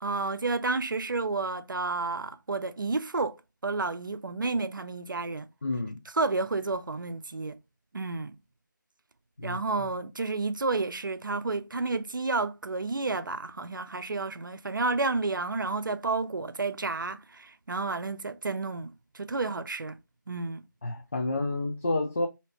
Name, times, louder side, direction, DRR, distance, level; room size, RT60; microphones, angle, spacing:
voice 1, 0.0-3.3 3.6-5.5 6.1-7.6 7.9-8.4 9.4-20.0 20.3-20.6, right 3 dB, 80° right, 0.5 m, -31 dB
voice 2, 5.6-6.0 9.4-9.9 20.8-22.3, left 2 dB, 40° left, 0.4 m, -30 dB
3.3 x 2.8 x 2.9 m
figure-of-eight pair, 170°, 11 cm